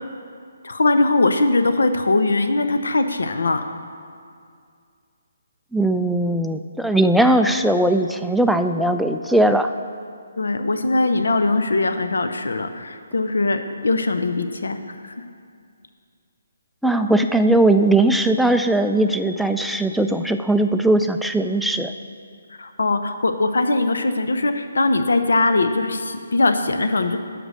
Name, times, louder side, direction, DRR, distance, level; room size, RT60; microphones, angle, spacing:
voice 1, 0.6-3.6 10.4-15.1 22.6-27.2, left 2 dB, 80° left, 8 dB, 0.7 m, -21 dB
voice 2, 5.7-9.7 16.8-21.9, right 1 dB, ahead, 6 dB, 0.3 m, -19 dB
8.0 x 6.0 x 6.3 m, 2.3 s
figure-of-eight pair, 150°, 0 cm